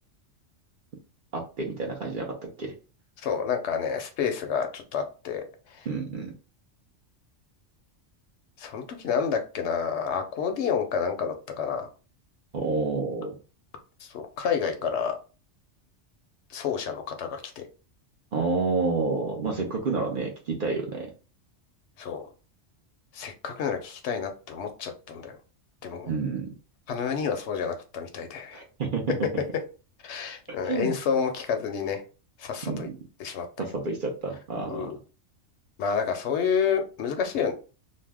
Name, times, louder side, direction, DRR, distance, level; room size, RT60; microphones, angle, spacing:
voice 1, 1.3-2.7 5.9-6.3 12.5-13.4 18.3-21.1 26.1-26.5 28.5-29.1 30.6-31.0 32.6-33.0 33.6-34.9, right 4 dB, 55° right, 1 dB, 0.7 m, -29 dB
voice 2, 3.2-5.4 5.7-5.9 8.6-11.9 14.0-15.2 16.5-17.7 22.0-22.3 23.1-25.3 25.8-26.1 26.9-28.6 30.0-32.0 32.4-32.9 33.2-33.4 34.7-35.0 35.8-37.5, left 6 dB, 70° left, 6 dB, 0.8 m, -29 dB
2.6 x 2.0 x 3.3 m, 0.34 s
omnidirectional pair, 1.3 m